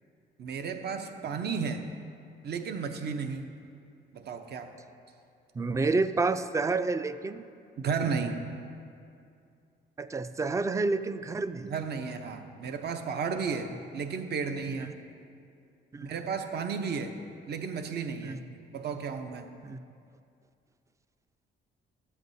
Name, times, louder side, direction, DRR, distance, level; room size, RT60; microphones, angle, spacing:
voice 1, 0.4-1.9 2.4-3.5 4.1-4.7 7.8-8.4 11.7-15.0 16.0-17.1 17.5-18.4 18.7-19.5, right 5 dB, 55° right, 7 dB, 0.7 m, -33 dB
voice 2, 5.5-7.4 10.0-11.8 14.8-14.9 15.9-16.1 18.2-18.4 19.6-19.8, right 3 dB, 15° right, 12 dB, 0.3 m, -29 dB
13.0 x 8.0 x 2.7 m, 2.4 s
cardioid pair, 90°, 20 cm